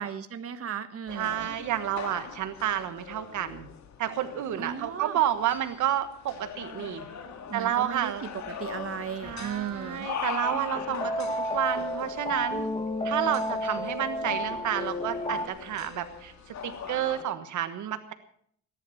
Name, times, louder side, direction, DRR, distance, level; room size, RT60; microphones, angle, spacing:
voice 1, 0.0-1.5 4.6-5.2 7.5-10.1, right 8 dB, 50° right, 8 dB, 1.4 m, -36 dB
sound 1, 1.1-17.2, left 6 dB, 65° left, 2.2 m, -41 dB
voice 2, 1.1-3.7 4.0-7.0 7.5-8.2 9.2-12.7 13.0-18.1, right 11 dB, 75° right, 10 dB, 1.4 m, -30 dB
sound 2, 10.4-15.5, equal, 20° left, 1.6 m, -31 dB
19.0 x 11.0 x 5.7 m, 0.63 s
cardioid pair, 90°, 30 cm